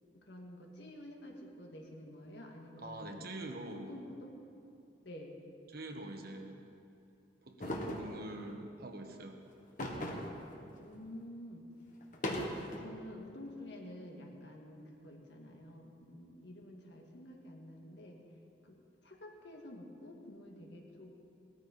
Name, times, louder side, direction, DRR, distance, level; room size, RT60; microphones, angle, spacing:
voice 1, 0.1-3.2 3.7-4.3 5.0-5.4 10.6-11.7 12.8-18.2 18.6-21.2, left 1 dB, 70° left, 1 dB, 1.8 m, -50 dB
voice 2, 2.8-3.9 5.7-6.6 7.4-9.4, right 1 dB, 55° right, 4 dB, 1.3 m, -45 dB
sound 1, 7.6-8.1 9.8-10.4 10.8-10.9 12.0-12.8, left 1 dB, 45° left, 1.5 m, -37 dB
18.0 x 13.5 x 4.2 m, 2.6 s
head